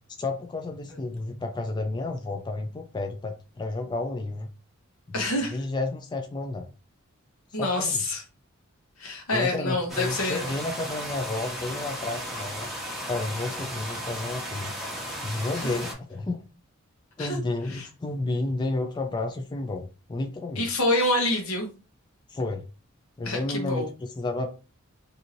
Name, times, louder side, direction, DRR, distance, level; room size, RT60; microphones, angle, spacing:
voice 1, 0.2-4.5 5.1-6.7 7.6-8.0 9.3-12.7 13.1-14.7 15.2-16.4 17.2-20.6 22.3-22.6 23.2-24.5, left 2 dB, 20° left, 4 dB, 0.3 m, -31 dB
voice 2, 5.1-5.6 7.5-8.2 9.0-10.5 15.5-15.7 17.2-17.4 17.7-17.9 20.6-21.7 23.2-23.9, left 2 dB, 80° left, 2 dB, 1.0 m, -27 dB
sound 1, 9.9-15.9, equal, ahead, 0.8 m, -35 dB
2.9 x 2.7 x 2.5 m, 0.33 s
head